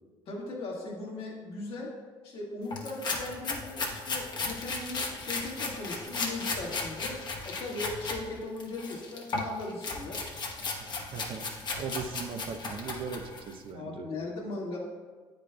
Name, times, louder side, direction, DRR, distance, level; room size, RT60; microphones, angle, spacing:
voice 1, 0.3-1.9 2.2-10.2 13.7-14.8, left 2 dB, 60° left, -2 dB, 1.6 m, -38 dB
sound 1, 2.7-8.2 8.6-13.5, left 3 dB, 45° left, 1.1 m, -35 dB
voice 2, 11.1-11.5 11.8-14.1, right 5 dB, 55° right, 6 dB, 0.6 m, -38 dB
8.6 x 5.1 x 2.2 m, 1.5 s
supercardioid pair, 75°, 11 cm